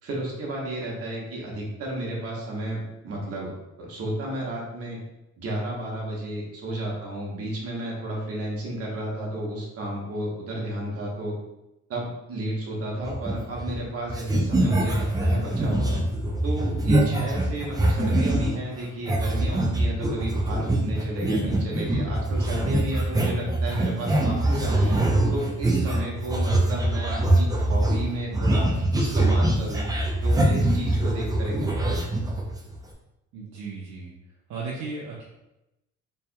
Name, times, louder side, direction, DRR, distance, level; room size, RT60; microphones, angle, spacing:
voice 1, 0.0-5.0 5.4-11.3 11.9-16.0 16.4-25.0 25.3-28.7 28.9-29.9 30.2-32.0, right 1 dB, 50° right, -3 dB, 1.2 m, -32 dB
sound 1, 13.0-13.8 14.1-18.6 19.1-32.7, right 1 dB, 10° right, 0.5 m, -23 dB
voice 2, 33.3-34.1 34.5-35.2, right 4 dB, 75° right, -5 dB, 0.8 m, -35 dB
4.2 x 3.4 x 2.2 m, 0.91 s
cardioid pair, 130°, 29 cm